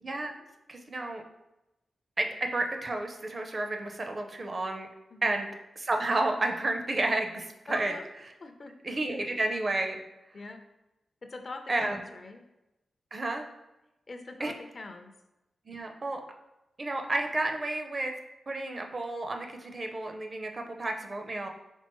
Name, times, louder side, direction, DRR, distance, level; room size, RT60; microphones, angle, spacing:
voice 1, 0.0-0.4 0.7-1.2 2.2-4.9 5.2-5.5 5.8-7.9 8.8-10.0 11.7-12.0 13.1-13.5 14.4-14.5 15.7-16.2 16.8-18.1 18.5-21.5, right 2 dB, 35° right, 4 dB, 0.5 m, -31 dB
voice 2, 7.7-8.0 8.4-8.7 10.3-10.6 11.2-12.4 14.1-15.1, left 3 dB, 40° left, 5 dB, 0.5 m, -42 dB
4.4 x 3.9 x 3.0 m, 0.95 s
wide cardioid pair, 120°, 0 cm